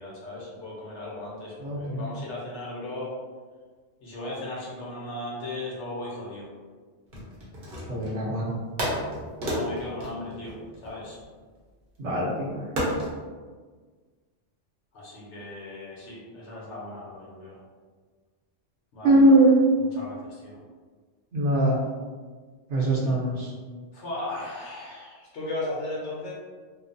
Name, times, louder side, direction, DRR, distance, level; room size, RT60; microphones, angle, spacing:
voice 1, 0.0-3.1 4.0-6.5 9.4-11.2 14.9-17.6 18.9-19.4 19.9-20.6 23.9-26.3, left 2 dB, 70° left, -5 dB, 1.0 m, -36 dB
voice 2, 1.6-2.1 7.9-8.5 12.0-12.7 19.0-19.6 21.3-21.8 22.7-23.5, right 1 dB, 70° right, -5 dB, 1.1 m, -21 dB
sound 1, 7.1-8.2 8.8-11.3 12.8-13.2, equal, 50° right, 0.9 m, -31 dB
2.9 x 2.0 x 2.5 m, 1.5 s
omnidirectional pair, 1.3 m